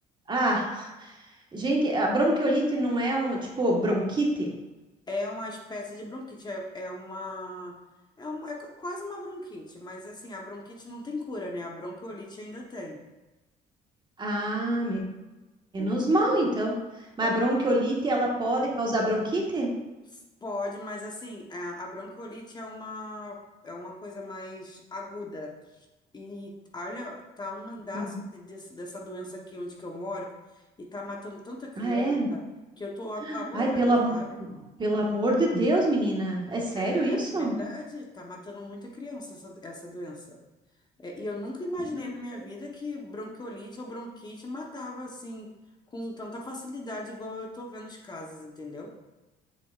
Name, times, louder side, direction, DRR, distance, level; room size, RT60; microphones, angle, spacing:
voice 1, 0.3-1.1 1.5-4.5 14.2-15.0 15.7-16.7 17.2-19.7 27.9-28.1 31.8-32.3 33.2-34.5 34.8-37.5 41.9-42.0, right 1 dB, 25° right, -1 dB, 1.4 m, -26 dB
voice 2, 5.1-7.7 8.2-13.0 15.8-16.2 17.2-17.6 20.1-23.4 23.6-25.9 26.1-32.4 32.8-34.4 36.7-40.4 41.0-45.5 45.9-48.9, left 1 dB, 25° left, 0 dB, 1.0 m, -38 dB
7.6 x 5.9 x 2.4 m, 1.1 s
cardioid pair, 110°, 17 cm